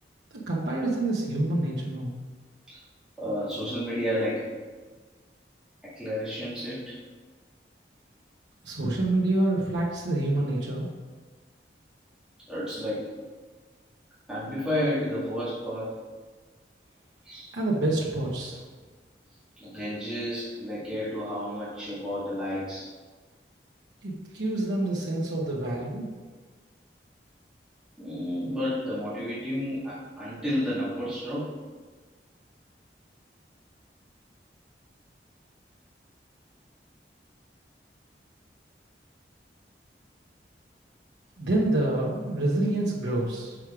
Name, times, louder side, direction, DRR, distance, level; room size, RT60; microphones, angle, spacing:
voice 1, 0.3-2.1 8.6-10.9 17.5-18.6 24.0-26.1 41.4-43.6, right 2 dB, 90° right, -5 dB, 1.1 m, -27 dB
voice 2, 3.2-4.5 5.8-7.0 12.5-13.1 14.3-16.0 17.2-17.5 19.6-22.9 28.0-31.6, equal, 5° right, -12 dB, 2.0 m, -31 dB
6.4 x 4.9 x 4.9 m, 1.4 s
head